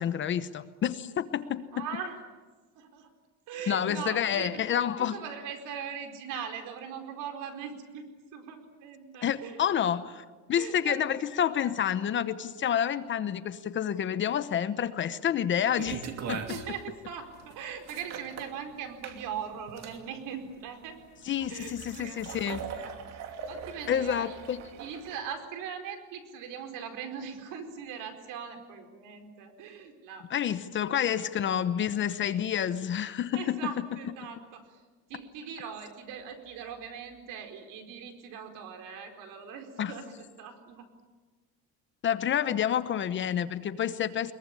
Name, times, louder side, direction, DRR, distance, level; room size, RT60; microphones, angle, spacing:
voice 1, 0.0-1.8 3.7-5.2 9.2-16.4 21.3-22.7 23.9-24.6 30.3-33.4 39.8-39.9 42.0-44.3, left 9 dB, 35° left, 13 dB, 0.9 m, -29 dB
voice 2, 1.7-2.2 2.8-3.1 3.5-9.6 10.5-11.0 16.5-21.0 21.5-22.2 22.4-23.0 23.5-24.4 24.8-30.3 30.6-31.1 31.5-31.7 33.3-34.8 35.1-40.8, right 7 dB, 65° right, 6 dB, 4.6 m, -40 dB
sound 1, 15.8-25.2, right 6 dB, 45° right, 2.7 m, -41 dB
22.5 x 22.5 x 10.0 m, 1.3 s
cardioid pair, 155°, 35 cm